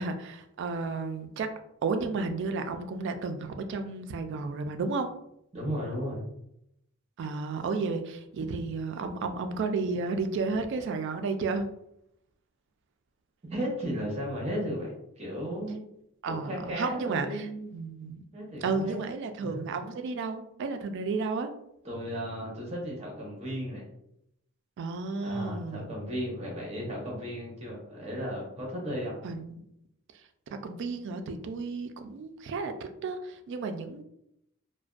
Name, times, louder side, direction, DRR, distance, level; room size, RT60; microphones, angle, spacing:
voice 1, 0.0-1.5 1.8-5.1 7.2-11.7 16.2-17.5 17.7-18.3 18.6-21.5 24.8-25.9 29.2-29.6 30.6-32.7 33.0-34.0, right 4 dB, 60° right, 7 dB, 0.3 m, -32 dB
voice 2, 5.5-6.2 13.5-15.8 16.2-17.7 18.3-19.0 19.4-19.6 21.8-23.8 25.2-29.2, equal, 30° right, -2 dB, 0.8 m, -35 dB
2.5 x 2.1 x 2.3 m, 0.77 s
head